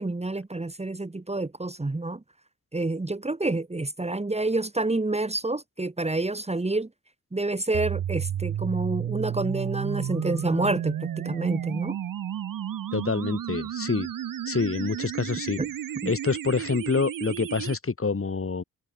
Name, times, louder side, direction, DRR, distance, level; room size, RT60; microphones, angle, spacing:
voice 1, 0.0-2.2 2.7-6.9 7.3-12.0 15.6-15.7 16.0-16.1, right 2 dB, 20° right, 2.2 m, -28 dB
sound 1, 7.7-17.8, right 10 dB, 75° right, 3.7 m, -32 dB
voice 2, 12.9-14.1 14.5-15.6 16.1-18.6, left 4 dB, 40° left, 6.8 m, -27 dB
supercardioid pair, 50°, 34 cm